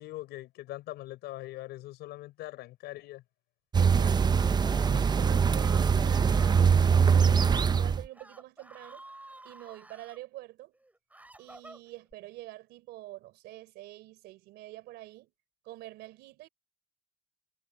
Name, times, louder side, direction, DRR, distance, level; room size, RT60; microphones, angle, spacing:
voice 1, 0.0-3.2, left 17 dB, 85° left, 4.8 m, -42 dB
sound 1, 3.7-8.1, right 6 dB, 25° right, 0.6 m, -23 dB
voice 2, 3.7-4.4 4.9-9.0 9.4-10.7 11.4-15.3 15.6-16.5, right 17 dB, 85° right, 3.8 m, -46 dB
Screaming, 4.3-6.7 7.5-7.8 8.1-10.2 10.7-12.1, right 1 dB, 10° right, 7.4 m, -51 dB
cardioid pair, 110°, 17 cm